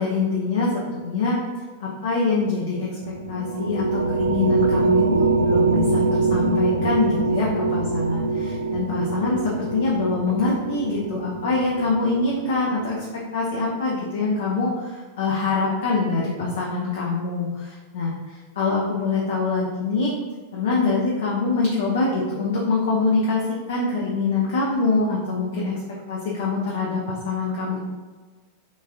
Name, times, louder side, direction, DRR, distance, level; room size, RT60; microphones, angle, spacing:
voice 1, 0.0-1.4 1.8-20.1 20.5-27.8, left 3 dB, 60° left, -4 dB, 0.5 m, -24 dB
sound 1, 3.0-12.7, right 3 dB, 85° right, 0.3 m, -23 dB
3.8 x 2.3 x 2.5 m, 1.4 s
figure-of-eight pair, 90°, 0 cm